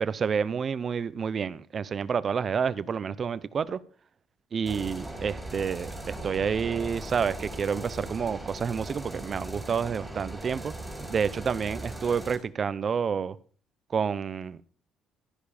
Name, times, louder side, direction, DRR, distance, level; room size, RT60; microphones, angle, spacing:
voice 1, 0.0-3.8 4.5-10.7 11.0-13.4 13.9-14.6, right 6 dB, 35° right, 0.7 m, -29 dB
sound 1, 4.6-12.4, right 1 dB, 5° right, 4.8 m, -39 dB
13.5 x 10.5 x 5.0 m
cardioid pair, 140°, 0 cm